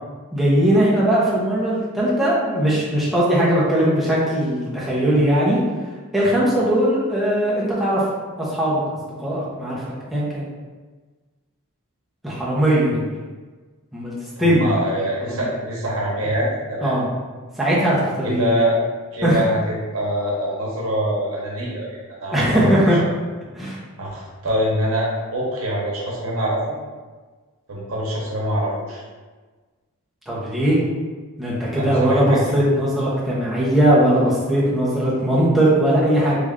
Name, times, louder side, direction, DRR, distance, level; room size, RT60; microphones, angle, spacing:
voice 1, 0.3-5.6 6.1-8.0 8.4-9.8 10.1-10.4 12.2-13.1 13.9-14.1 14.4-14.7 15.3-15.5 16.8-17.0 17.6-18.6 19.2-19.4 22.3-23.0 23.6-23.8 30.3-30.8 31.4-36.4, right 1 dB, ahead, -8 dB, 0.7 m, -19 dB
voice 2, 14.4-16.9 18.2-18.8 19.1-22.7 24.0-26.8 27.7-29.0 31.8-32.6, equal, 65° right, -4 dB, 0.9 m, -24 dB
3.2 x 2.5 x 3.6 m, 1.3 s
head